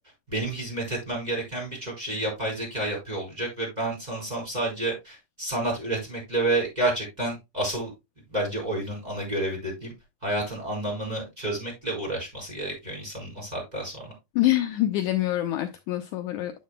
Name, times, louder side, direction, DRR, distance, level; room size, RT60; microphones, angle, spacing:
voice 1, 0.3-7.9 8.3-9.9 10.2-14.1, right 2 dB, 10° right, -1 dB, 4.5 m, -30 dB
voice 2, 14.4-16.5, left 14 dB, 80° left, 7 dB, 1.8 m, -25 dB
9.4 x 7.8 x 2.2 m, 0.22 s
omnidirectional pair, 4.1 m